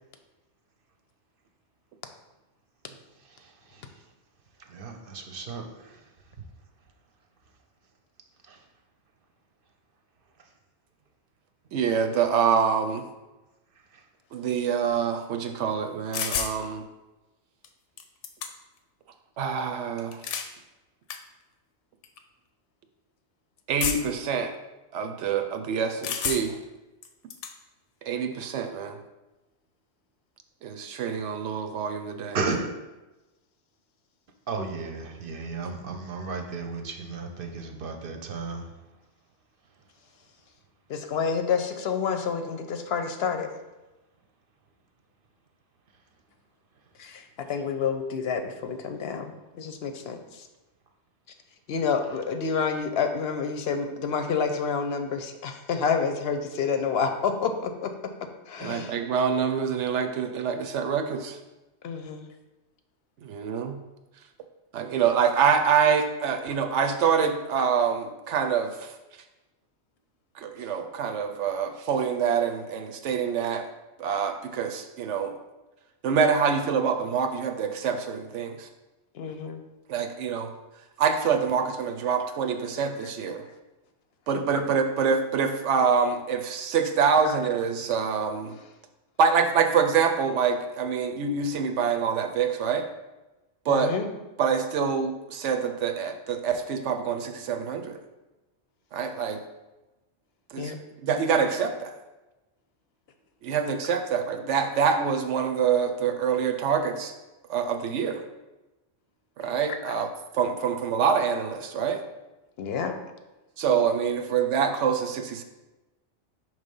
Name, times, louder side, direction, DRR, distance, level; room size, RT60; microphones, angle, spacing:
voice 1, 3.3-3.8 4.7-6.0 8.5-8.6 32.3-32.7 34.5-38.7, right 4 dB, 55° right, 4 dB, 0.8 m, -34 dB
voice 2, 11.7-13.0 14.3-16.8 19.4-20.2 23.7-24.5 24.9-26.6 28.1-29.0 30.6-32.4 58.6-61.4 63.2-63.8 64.7-68.9 70.4-73.6 74.0-75.3 76.0-78.7 79.9-80.5 81.0-83.5 84.3-88.5 89.2-92.8 93.7-93.9 94.4-98.0 98.9-99.4 100.5-100.7 101.0-102.0 103.4-107.1 107.5-108.2 109.4-110.1 110.3-112.0 113.6-115.4, right 6 dB, 80° right, 7 dB, 1.0 m, -26 dB
sound 1, 16.1-16.6 17.6-17.7 18.0-18.8 20.0-20.5 21.1-21.2 22.0-22.2 23.8-24.2 26.0-26.6 27.0-27.5, left 7 dB, 90° left, 0.9 m, -30 dB
voice 3, 40.9-43.5 47.0-50.4 51.7-57.9 58.5-58.9 61.8-62.2 79.1-79.6 93.7-94.1 100.6-100.8 109.7-109.8 112.6-112.9, left 6 dB, 65° left, 7 dB, 0.8 m, -29 dB
5.6 x 3.2 x 5.3 m, 1.1 s
omnidirectional pair, 1.2 m